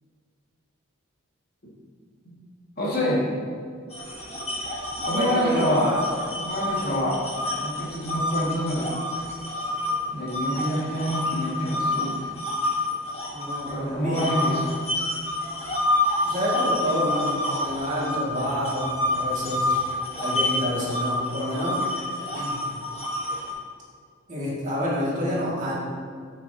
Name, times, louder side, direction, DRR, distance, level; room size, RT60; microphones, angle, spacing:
voice 1, 2.8-3.2 5.0-6.0 6.4-7.3 7.6-8.9 10.1-12.3 13.7-14.7, equal, 45° left, -5 dB, 2.0 m, -26 dB
sound 1, 3.9-9.9 10.3-13.7 14.1-23.5, left 1 dB, 30° left, 1.4 m, -28 dB
voice 2, 5.1-6.0 13.3-14.3 16.2-19.8 20.2-21.8 22.3-22.6 24.3-25.8, equal, 35° right, -7 dB, 2.1 m, -28 dB
11.5 x 6.1 x 2.8 m, 2.2 s
head